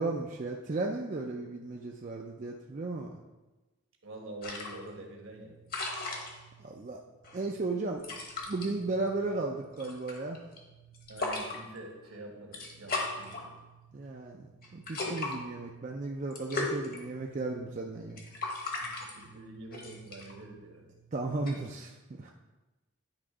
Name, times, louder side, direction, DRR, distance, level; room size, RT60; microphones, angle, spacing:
voice 1, 0.0-3.2 6.6-7.0 7.3-8.0 8.5-10.4 13.9-18.3 21.1-22.3, right 3 dB, 35° right, 0 dB, 0.4 m, -35 dB
voice 2, 4.0-5.6 11.1-13.5 18.8-20.9, right 2 dB, 65° right, 1 dB, 1.3 m, -46 dB
sound 1, 4.4-21.5, left 2 dB, 40° left, 1.1 m, -40 dB
9.9 x 3.6 x 4.9 m, 1.1 s
head